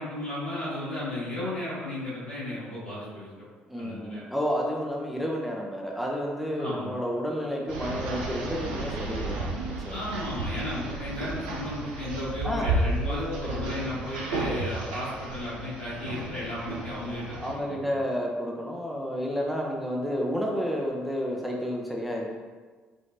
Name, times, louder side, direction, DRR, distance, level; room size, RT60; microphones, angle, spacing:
voice 1, 0.0-3.3 3.8-4.2 6.6-6.9 9.9-17.9, left 1 dB, 85° left, -12 dB, 1.0 m, -34 dB
voice 2, 3.7-10.0 12.4-12.7 13.0-13.6 17.4-22.3, equal, ahead, -2 dB, 0.7 m, -31 dB
sound 1, 7.7-17.5, right 2 dB, 75° right, 0.5 m, -33 dB
4.8 x 3.1 x 2.7 m, 1.4 s
figure-of-eight pair, 45°, 5 cm